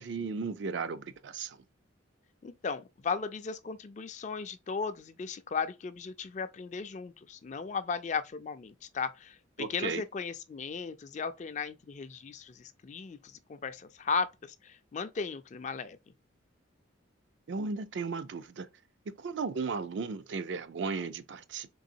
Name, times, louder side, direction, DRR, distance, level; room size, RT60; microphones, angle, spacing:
voice 1, 0.0-1.6 9.6-10.0 17.5-18.7 19.2-21.7, right 4 dB, 65° right, 0.4 m, -35 dB
voice 2, 2.4-16.0, left 5 dB, 35° left, 0.3 m, -36 dB
3.9 x 3.3 x 2.6 m
head